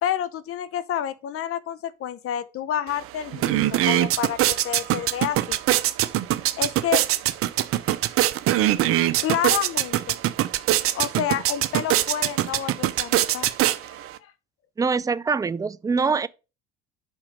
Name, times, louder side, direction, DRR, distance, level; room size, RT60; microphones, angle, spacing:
voice 1, 0.0-5.6 6.6-7.0 7.5-7.7 9.2-10.2 10.9-13.5 13.8-13.9, left 10 dB, 45° left, 0.9 m, -29 dB
sound 1, 2.9-3.0 3.3-14.2, right 14 dB, 45° right, 0.7 m, -23 dB
voice 2, 14.8-16.3, right 4 dB, 10° right, 0.4 m, -24 dB
5.8 x 5.4 x 6.6 m
hypercardioid pair, 65°, 31 cm